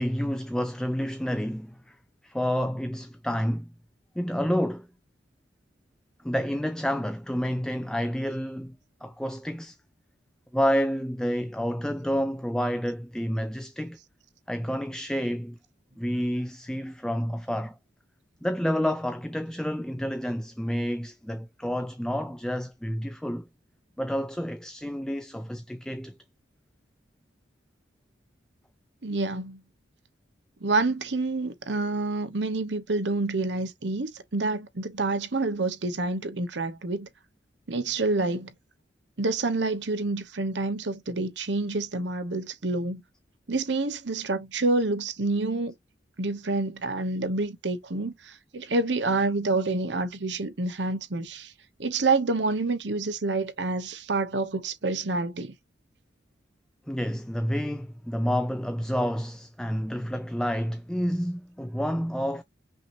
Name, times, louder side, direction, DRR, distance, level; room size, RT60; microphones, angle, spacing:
voice 1, 0.0-2.0 2.2-3.7 4.2-4.9 6.2-8.8 9.0-9.8 10.5-14.0 14.5-15.6 16.0-17.8 18.4-23.5 24.0-26.2 56.9-62.4, equal, 5° left, 0.4 m, -29 dB
voice 2, 29.0-29.6 30.6-37.1 37.7-38.5 39.2-43.0 43.5-45.7 46.2-51.5 51.8-55.5, right 3 dB, 75° right, 1.0 m, -28 dB
5.8 x 2.6 x 2.9 m
head